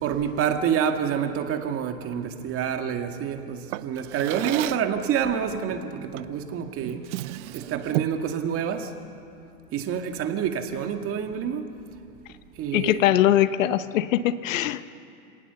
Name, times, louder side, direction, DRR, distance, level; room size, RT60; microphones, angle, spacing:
voice 1, 0.0-7.1 7.5-8.9 9.7-11.7 12.6-13.1, right 8 dB, 30° right, 6 dB, 1.9 m, -27 dB
Drawer open or close, 3.7-5.0 6.2-6.4 6.8-8.3, right 17 dB, 55° right, 0.7 m, -32 dB
voice 2, 12.7-14.8, left 13 dB, 65° left, 13 dB, 1.0 m, -21 dB
29.0 x 18.5 x 6.9 m, 2.5 s
hypercardioid pair, 125°, 42 cm